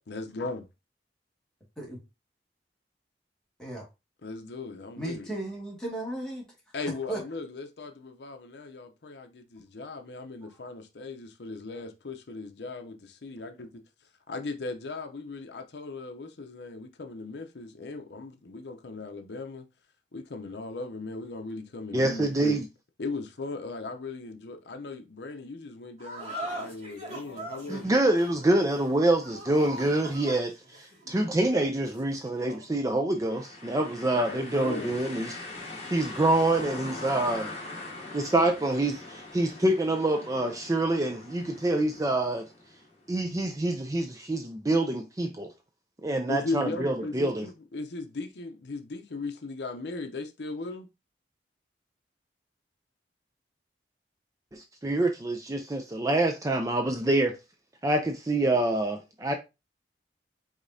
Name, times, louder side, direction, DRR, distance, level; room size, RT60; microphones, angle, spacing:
voice 1, 0.1-0.7 4.2-5.3 6.7-13.7 14.3-19.7 20.1-22.6 23.0-27.9 34.3-35.0 46.3-50.9, left 3 dB, 70° left, 0.6 m, -38 dB
voice 2, 5.0-6.4 7.1-7.2, right 1 dB, 5° left, 1.9 m, -35 dB
voice 3, 21.9-22.6 27.7-35.3 35.9-37.5 38.1-42.4 43.1-45.5 46.0-47.5 54.5-57.4 57.8-59.3, right 2 dB, 20° right, 0.4 m, -26 dB
sound 1, 26.0-32.7, right 1 dB, 40° right, 2.1 m, -42 dB
sound 2, 33.2-43.0, left 2 dB, 35° left, 1.4 m, -42 dB
5.1 x 3.7 x 2.7 m
head